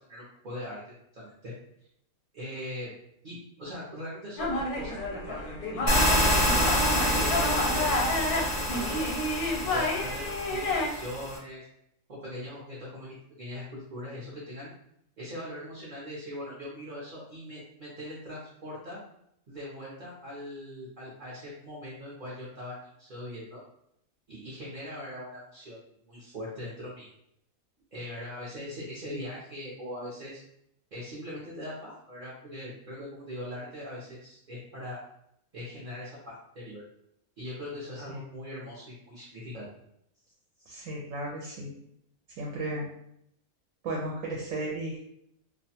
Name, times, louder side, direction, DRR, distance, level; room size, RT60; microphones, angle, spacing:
voice 1, 0.1-0.8 1.1-1.5 2.3-2.9 3.2-9.0 9.6-11.7 12.1-14.7 15.2-19.0 19.5-23.6 24.3-27.1 27.9-30.4 30.9-35.0 35.5-36.8 37.4-39.6, left 1 dB, 50° right, -7 dB, 0.6 m, -41 dB
sound 1, 4.4-10.9, left 2 dB, 85° left, 1.1 m, -30 dB
sound 2, 5.9-11.4, equal, 40° left, 0.6 m, -27 dB
voice 2, 40.7-41.7 42.4-42.9 43.8-45.0, right 1 dB, 70° right, -2 dB, 0.9 m, -34 dB
2.4 x 2.2 x 2.7 m, 0.75 s
omnidirectional pair, 1.5 m